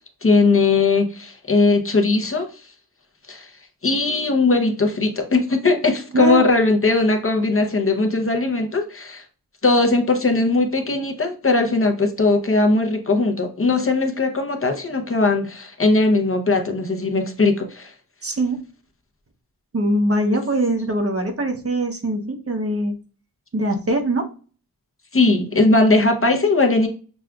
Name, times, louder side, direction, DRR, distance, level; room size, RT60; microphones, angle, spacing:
voice 1, 0.2-2.6 3.3-3.5 3.8-9.2 9.6-17.9 25.1-26.9, left 3 dB, 35° left, 3 dB, 0.6 m, -19 dB
voice 2, 18.2-18.6 19.7-22.9 23.5-24.3, right 1 dB, 40° right, 4 dB, 0.7 m, -22 dB
6.1 x 2.3 x 2.3 m, 0.38 s
wide cardioid pair, 95°, 38 cm